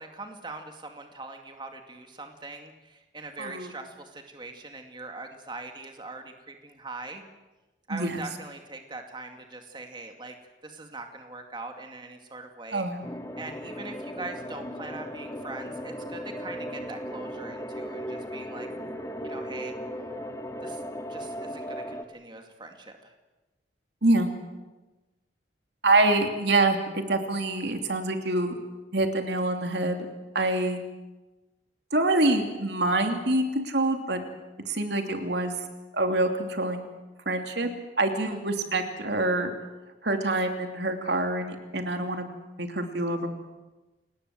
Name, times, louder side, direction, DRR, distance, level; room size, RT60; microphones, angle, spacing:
voice 1, 0.0-7.2 7.9-10.3 10.6-12.9 13.4-18.7 19.2-19.7 20.6-20.8 21.1-23.1 38.2-38.4, right 3 dB, 25° right, 4 dB, 2.3 m, -42 dB
voice 2, 3.4-3.7 7.9-8.2 12.7-13.0 24.0-24.3 25.8-28.5 28.9-30.1 30.3-30.8 31.9-34.2 34.7-35.5 35.9-36.8 37.2-37.7 38.0-39.5 40.0-42.3 42.6-43.3, right 2 dB, 70° right, 5 dB, 3.0 m, -26 dB
sound 1, 13.0-22.0, equal, 20° left, 2.0 m, -37 dB
29.0 x 20.0 x 7.8 m, 1.1 s
head